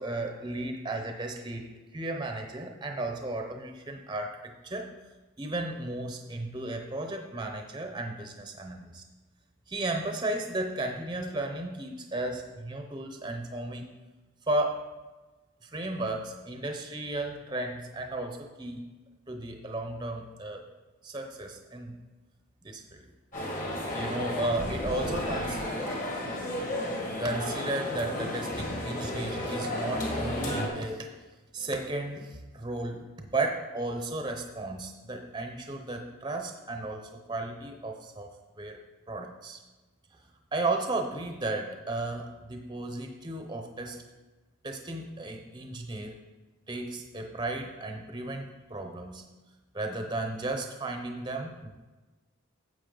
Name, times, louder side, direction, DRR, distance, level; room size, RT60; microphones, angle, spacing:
voice 1, 0.0-4.9 5.4-9.0 9.7-13.9 14.5-15.0 15.6-18.9 19.3-20.7 21.0-22.0 22.6-23.1 23.9-25.6 27.2-31.1 31.5-38.3 38.6-38.8 39.1-39.6 40.5-44.0 44.6-46.2 46.7-49.2 49.7-51.8, right 2 dB, 20° right, 4 dB, 0.7 m, -34 dB
sound 1, 23.3-30.7, left 1 dB, 40° left, 1.9 m, -33 dB
10.0 x 7.4 x 3.9 m, 1.2 s
head